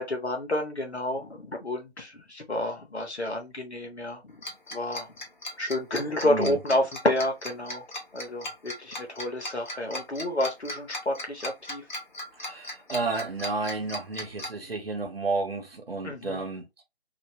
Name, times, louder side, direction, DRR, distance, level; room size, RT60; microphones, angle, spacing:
voice 1, 0.0-4.4 4.7-5.1 5.6-7.8 8.1-11.8 16.0-16.4, left 1 dB, 80° left, 1.1 m, -30 dB
Tick-tock, 4.4-14.5, left 1 dB, 45° left, 0.9 m, -37 dB
voice 2, 6.2-6.6 12.4-16.7, right 3 dB, 65° right, 1.0 m, -31 dB
2.7 x 2.2 x 2.7 m
figure-of-eight pair, 155°, 32 cm